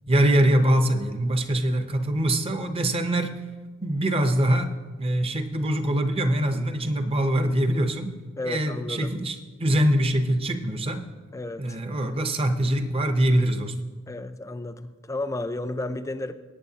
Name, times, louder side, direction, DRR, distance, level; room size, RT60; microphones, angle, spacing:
voice 1, 0.1-3.4 3.8-8.2 8.4-11.1 11.6-13.7, right 1 dB, 25° right, 8 dB, 0.6 m, -23 dB
voice 2, 8.4-9.1 11.3-11.8 14.1-16.3, left 2 dB, 15° left, 11 dB, 0.3 m, -32 dB
17.0 x 8.9 x 2.8 m, 1.3 s
head